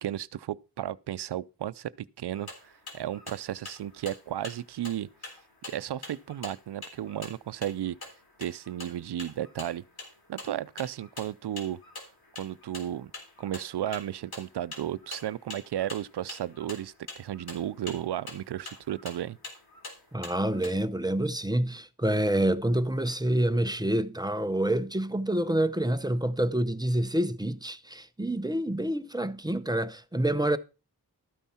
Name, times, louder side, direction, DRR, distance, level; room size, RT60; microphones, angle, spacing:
voice 1, 0.0-5.1 5.7-8.0 8.4-9.8 10.3-11.8 12.4-13.1 13.4-19.4, right 11 dB, 80° right, 0.5 m, -34 dB
sound 1, 2.3-20.7, left 3 dB, 65° left, 3.7 m, -46 dB
voice 2, 20.1-30.6, right 1 dB, 10° right, 0.6 m, -27 dB
13.0 x 9.1 x 4.3 m
wide cardioid pair, 135°, 39 cm